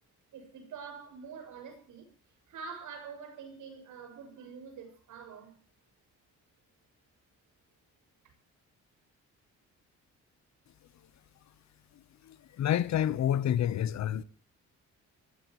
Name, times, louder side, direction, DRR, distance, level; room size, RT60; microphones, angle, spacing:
voice 1, 0.3-2.1 2.5-5.6 8.2-8.3, right 5 dB, 80° right, 6.6 m, -46 dB
voice 2, 12.2-14.2, left 10 dB, 65° left, 0.9 m, -28 dB
25.0 x 15.5 x 3.1 m
cardioid pair, 90°, 30 cm